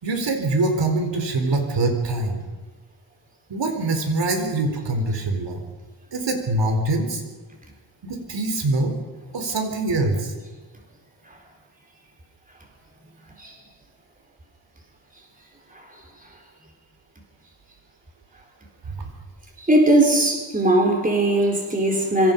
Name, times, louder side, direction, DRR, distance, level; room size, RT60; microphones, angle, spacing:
voice 1, 0.0-2.4 3.5-5.6 6.1-7.2 8.0-9.0 9.3-10.3 19.0-19.1, right 2 dB, 70° right, 4 dB, 4.3 m, -24 dB
voice 2, 19.6-22.3, right 1 dB, 20° right, 1 dB, 4.2 m, -19 dB
26.5 x 25.5 x 5.4 m, 1.3 s
wide cardioid pair, 180°, 45 cm